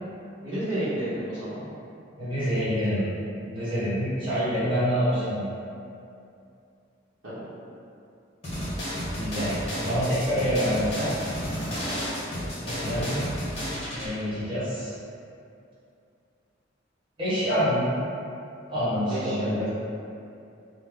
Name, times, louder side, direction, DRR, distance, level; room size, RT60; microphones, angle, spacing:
voice 1, 0.4-1.6 7.2-7.5 12.3-13.0 19.1-19.7, right 1 dB, 65° right, -13 dB, 0.7 m, -32 dB
voice 2, 2.2-3.0 3.4-5.5 9.1-11.1 12.6-13.3 13.9-14.9 17.2-17.9 18.7-19.7, equal, 25° right, -13 dB, 1.3 m, -26 dB
sound 1, 8.4-14.1, equal, 30° left, 1.0 m, -32 dB
3.2 x 2.0 x 3.5 m, 2.6 s
head